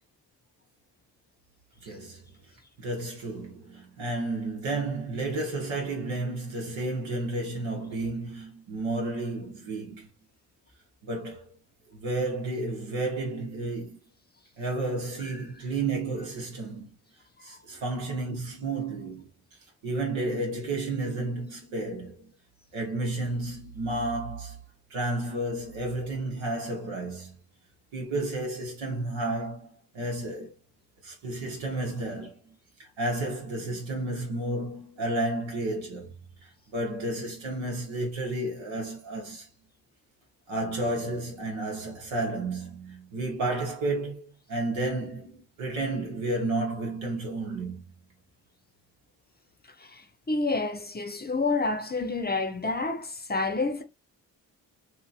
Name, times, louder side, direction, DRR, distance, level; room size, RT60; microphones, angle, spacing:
voice 1, 1.8-2.2 2.8-10.1 11.0-11.5 11.9-14.0 14.6-16.9 17.4-19.3 19.8-22.3 22.7-24.6 24.9-27.4 27.9-29.7 29.9-30.5 31.0-32.5 32.8-36.1 36.7-39.5 40.5-47.8, right 2 dB, 90° right, 1.2 m, -32 dB
voice 2, 49.9-53.8, left 3 dB, 20° left, 0.6 m, -29 dB
2.8 x 2.7 x 2.7 m
supercardioid pair, 40°, 46 cm